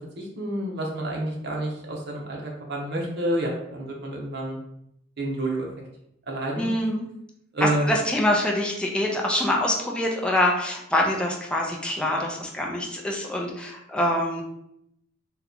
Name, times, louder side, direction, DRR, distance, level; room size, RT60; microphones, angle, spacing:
voice 1, 0.2-4.6 5.2-5.7 6.3-6.7 7.5-7.9, right 1 dB, 60° right, -1 dB, 0.8 m, -29 dB
voice 2, 6.6-7.0 7.6-14.4, left 1 dB, 5° left, -1 dB, 0.4 m, -25 dB
2.8 x 2.3 x 3.7 m, 0.77 s
head